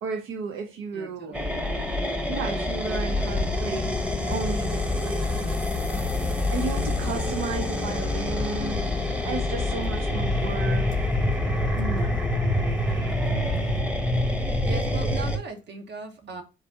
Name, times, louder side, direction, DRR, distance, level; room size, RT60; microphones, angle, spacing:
voice 1, 0.0-1.4 2.0-5.6 6.5-11.2 11.4-12.2, right 4 dB, 90° right, 0.6 m, -34 dB
voice 2, 0.9-1.6 14.6-16.4, right 3 dB, 60° right, 1.1 m, -38 dB
sound 1, 1.3-15.4, left 1 dB, 5° right, 0.8 m, -27 dB
sound 2, 3.1-13.8, left 6 dB, 40° left, 0.6 m, -33 dB
sound 3, 6.6-8.9, left 11 dB, 90° left, 0.4 m, -41 dB
3.9 x 2.6 x 4.7 m
cardioid pair, 90°, 20 cm